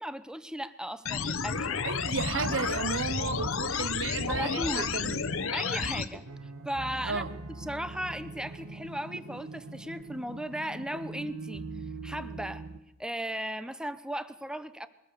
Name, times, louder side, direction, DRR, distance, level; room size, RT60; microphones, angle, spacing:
voice 1, 0.0-1.9 4.3-4.9 5.5-6.2 6.6-7.3 7.6-11.6 12.0-12.7 13.0-14.9, equal, 5° right, 0.8 m, -36 dB
sound 1, 1.1-6.1, left 5 dB, 65° left, 1.2 m, -31 dB
voice 2, 1.8-5.2 7.0-7.3, right 5 dB, 55° right, 0.6 m, -33 dB
sound 2, 2.0-12.8, right 2 dB, 80° right, 1.8 m, -42 dB
22.0 x 20.0 x 6.9 m
head